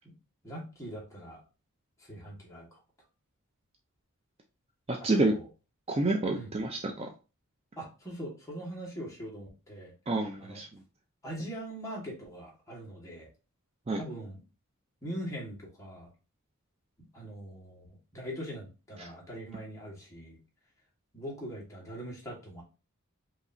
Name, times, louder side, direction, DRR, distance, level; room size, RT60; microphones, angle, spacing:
voice 1, 0.4-1.4 2.1-2.8 5.1-5.5 6.3-6.5 7.8-9.9 10.4-10.6 11.2-13.3 14.0-14.4 15.0-16.1 17.1-20.4 21.1-22.6, equal, 15° left, -4 dB, 1.6 m, -41 dB
voice 2, 4.9-5.3 5.9-7.1 10.1-10.7 13.9-14.0 19.0-19.1, right 2 dB, 25° right, 3 dB, 0.4 m, -28 dB
4.9 x 2.9 x 2.6 m, 0.31 s
head